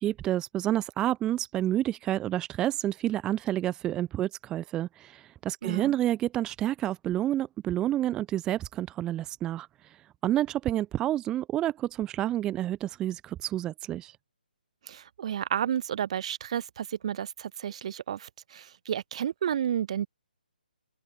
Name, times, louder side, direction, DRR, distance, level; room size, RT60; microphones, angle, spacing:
voice 1, 0.0-9.7 10.2-14.1, right 13 dB, 15° right, 1.2 m, -29 dB
voice 2, 5.6-5.9 14.9-20.1, right 9 dB, 40° right, 1.7 m, -31 dB
open air
figure-of-eight pair, 140°, 5 cm